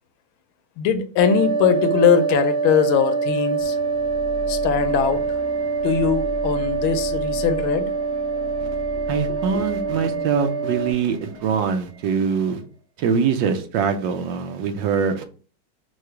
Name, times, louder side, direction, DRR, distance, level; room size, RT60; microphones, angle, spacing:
voice 1, 0.8-3.8 4.5-5.2 5.8-7.9 9.5-9.6, left 7 dB, 85° left, 1.5 m, -21 dB
sound 1, 1.2-10.9, right 4 dB, 55° right, 1.8 m, -25 dB
sound 2, 3.6-12.6, equal, 25° right, 0.5 m, -38 dB
voice 2, 9.1-12.6 13.0-15.2, right 6 dB, 75° right, 1.3 m, -23 dB
4.7 x 2.4 x 4.5 m
omnidirectional pair, 2.2 m